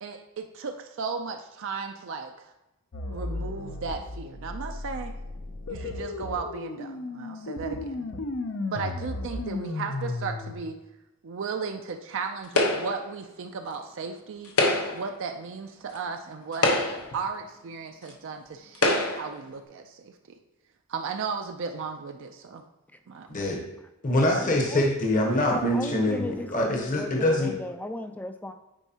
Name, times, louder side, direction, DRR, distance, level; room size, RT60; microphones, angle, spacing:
voice 1, 0.0-2.5 3.1-5.1 5.7-8.1 8.7-10.8 11.2-14.5 14.9-16.7 17.1-20.4 20.9-22.6 23.1-23.3, right 5 dB, 55° right, 4 dB, 0.4 m, -35 dB
sound 1, 2.9-10.6, left 2 dB, 60° left, 0.6 m, -34 dB
sound 2, 12.5-13.1 14.4-15.1 15.9-16.0 16.5-17.2 18.1-18.2 18.7-19.3, left 2 dB, 75° left, 1.0 m, -24 dB
voice 2, 23.3-23.6 24.0-27.6, left 1 dB, 35° left, 1 dB, 1.0 m, -24 dB
voice 3, 25.5-27.3 27.6-28.5, left 1 dB, 5° left, 7 dB, 0.3 m, -35 dB
9.0 x 4.5 x 2.8 m, 0.95 s
head